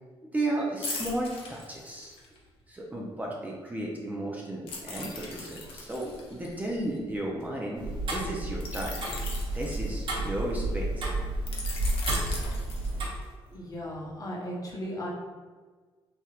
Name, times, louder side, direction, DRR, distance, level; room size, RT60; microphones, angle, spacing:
voice 1, 0.3-2.1 2.7-9.0 9.5-11.0, right 1 dB, 15° right, -3 dB, 0.5 m, -34 dB
sound 1, 0.8-2.4 4.7-7.4 8.6-10.4 11.5-13.3 13.7-13.9, left 3 dB, 75° left, 0.6 m, -39 dB
Tick-tock, 7.8-13.1, right 2 dB, 60° right, 0.9 m, -31 dB
voice 2, 13.5-15.1, equal, 35° left, -4 dB, 0.8 m, -36 dB
3.2 x 2.8 x 2.3 m, 1.4 s
cardioid pair, 95°, 10 cm